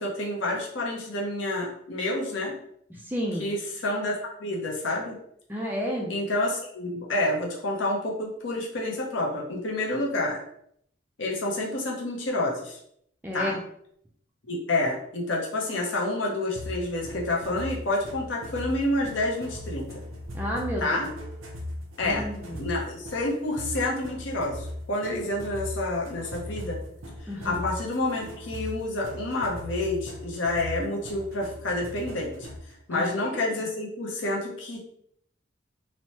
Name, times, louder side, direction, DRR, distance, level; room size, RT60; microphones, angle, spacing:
voice 1, 0.0-2.6 3.4-5.2 6.1-10.4 11.2-12.8 13.3-13.6 14.5-19.9 20.8-21.1 22.0-22.3 22.5-26.8 27.2-32.5 32.9-34.8, left 2 dB, 65° left, -2 dB, 0.7 m, -29 dB
voice 2, 2.9-3.4 5.5-6.1 13.2-13.6 20.3-20.9 22.0-22.7 27.3-27.6 32.9-33.5, equal, 10° right, -2 dB, 0.3 m, -31 dB
sound 1, 16.5-32.7, left 1 dB, 80° right, 0.6 m, -39 dB
3.0 x 2.1 x 2.9 m, 0.69 s
head